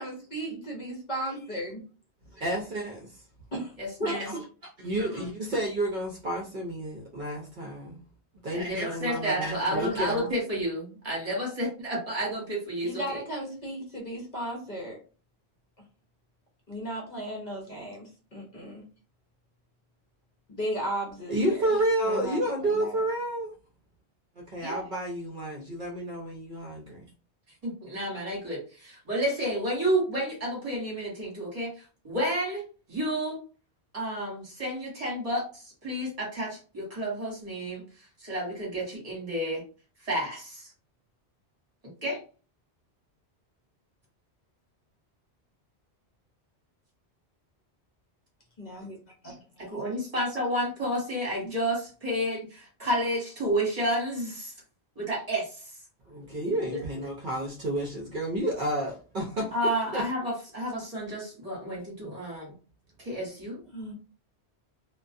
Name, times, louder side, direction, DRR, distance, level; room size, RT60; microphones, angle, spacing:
voice 1, 0.0-1.8 3.5-3.7 4.0-4.4 12.8-15.0 16.7-18.8 20.5-21.8 22.0-23.0 48.6-49.0 49.2-49.6 51.4-51.5 63.7-63.9, right 1 dB, 50° left, -2 dB, 0.7 m, -35 dB
voice 2, 2.4-3.1 4.1-4.4 4.8-8.0 8.4-10.3 21.3-23.5 24.5-27.0 56.1-59.5 59.9-60.0, right 1 dB, 55° right, -1 dB, 0.7 m, -30 dB
voice 3, 3.8-4.4 8.5-13.2 24.6-24.9 27.6-31.7 32.0-32.6 32.9-33.4 33.9-37.8 38.2-39.6 40.0-40.7 42.0-42.2 49.6-54.5 55.0-55.6 56.5-56.8 59.5-62.5 63.0-63.6, equal, 35° right, -4 dB, 1.2 m, -31 dB
2.3 x 2.2 x 2.5 m, 0.36 s
omnidirectional pair, 1.1 m